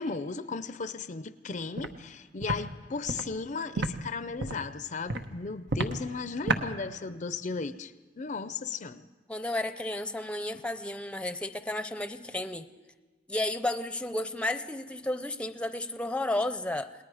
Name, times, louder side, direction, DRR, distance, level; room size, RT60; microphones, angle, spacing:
voice 1, 0.0-9.1, left 4 dB, 45° left, 0.6 m, -36 dB
Walk footsteps, 1.8-1.9 2.4-2.6 3.1-3.2 3.8-3.9 4.4-4.6 5.1-5.2 5.7-5.9 6.5-6.6, right 2 dB, 75° right, 1.3 m, -29 dB
voice 2, 9.3-12.7 13.3-17.0, left 1 dB, 5° left, 0.7 m, -32 dB
29.0 x 19.5 x 4.9 m
head